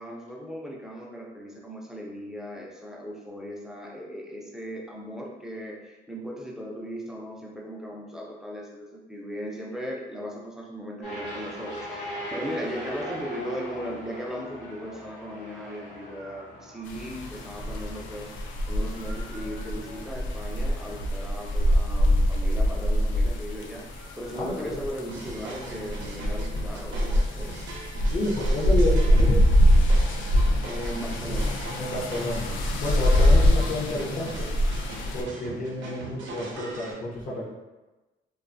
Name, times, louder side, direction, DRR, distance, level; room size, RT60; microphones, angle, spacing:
voice 1, 0.0-27.5 30.6-31.6, equal, ahead, -3 dB, 0.5 m, -37 dB
sound 1, 11.0-25.9, equal, 55° left, 1.1 m, -42 dB
sound 2, 16.9-35.2, equal, 75° left, 0.4 m, -24 dB
voice 2, 24.3-24.8 28.1-29.5 31.8-32.5 32.8-34.5 35.1-37.5, left 1 dB, 40° left, -6 dB, 0.7 m, -30 dB
sound 3, 25.1-36.9, right 2 dB, 70° right, 0.6 m, -40 dB
2.6 x 2.3 x 2.5 m, 1.1 s
cardioid pair, 90°, 20 cm